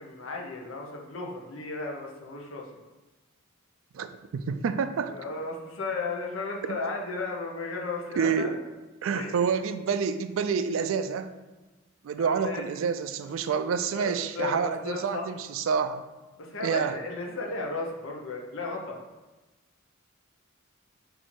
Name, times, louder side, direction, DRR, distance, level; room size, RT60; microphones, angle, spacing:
voice 1, 0.0-2.7 5.1-8.6 9.1-9.3 12.2-12.7 13.9-15.3 16.4-19.0, left 3 dB, 70° left, 0 dB, 0.8 m, -35 dB
voice 2, 4.3-5.1 6.7-6.8 8.2-8.6 9.0-11.3 12.0-16.0 16.6-16.9, right 6 dB, 70° right, 10 dB, 0.3 m, -28 dB
4.3 x 2.7 x 4.3 m, 1.2 s
head